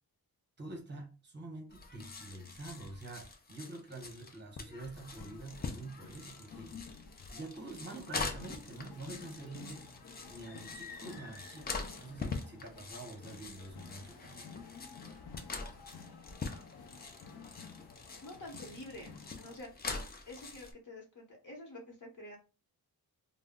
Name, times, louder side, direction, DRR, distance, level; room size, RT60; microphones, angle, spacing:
voice 1, 0.6-6.7 7.3-9.9 10.3-14.5, right 2 dB, 30° right, 0.8 m, -47 dB
sound 1, 1.7-20.7, left 4 dB, 25° left, 0.3 m, -44 dB
sound 2, 4.9-19.6, left 5 dB, 75° left, 0.6 m, -53 dB
voice 2, 18.2-19.8 20.2-22.4, left 1 dB, 50° left, 0.9 m, -48 dB
2.2 x 2.0 x 3.5 m
wide cardioid pair, 135°, 38 cm